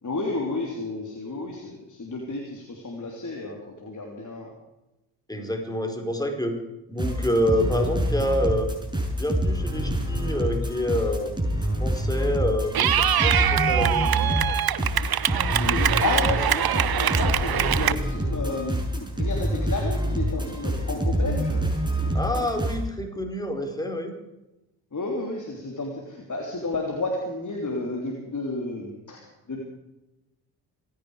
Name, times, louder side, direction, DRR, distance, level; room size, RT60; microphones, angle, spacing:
voice 1, 0.0-4.5 15.5-18.8 19.2-21.6 24.9-29.6, left 2 dB, 40° left, 0 dB, 3.4 m, -31 dB
voice 2, 5.3-6.6 6.9-8.7 9.2-11.3 11.8-14.2 22.1-24.1, left 1 dB, 10° left, 4 dB, 4.7 m, -27 dB
sound 1, 7.0-22.8, equal, 10° right, 6.1 m, -26 dB
Clapping / Cheering, 12.7-17.9, right 10 dB, 50° right, 1.0 m, -23 dB
27.0 x 10.5 x 5.0 m, 0.98 s
hypercardioid pair, 45°, 48 cm